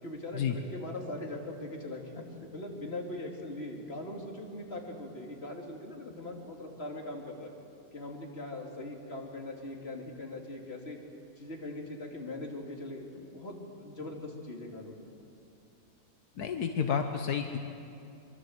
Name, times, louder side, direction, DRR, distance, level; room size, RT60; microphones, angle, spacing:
voice 1, 0.0-7.5 7.9-11.0 11.4-14.9, left 1 dB, 40° left, 0 dB, 3.1 m, -41 dB
voice 2, 16.4-17.6, left 7 dB, 80° left, 5 dB, 1.6 m, -30 dB
24.0 x 24.0 x 8.0 m, 2.6 s
omnidirectional pair, 1.6 m